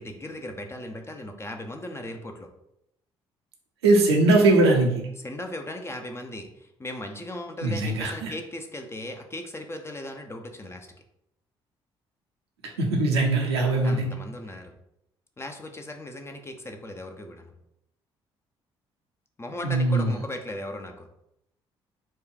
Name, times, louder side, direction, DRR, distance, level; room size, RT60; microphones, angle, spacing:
voice 1, 0.0-2.5 5.2-10.9 13.8-14.7 15.4-17.5 19.4-21.1, left 1 dB, 20° left, 4 dB, 0.8 m, -37 dB
voice 2, 3.8-5.0 7.6-8.3 12.8-14.0 19.6-20.1, right 2 dB, 75° right, 0 dB, 0.8 m, -21 dB
4.5 x 2.5 x 4.7 m, 0.81 s
figure-of-eight pair, 45°, 14 cm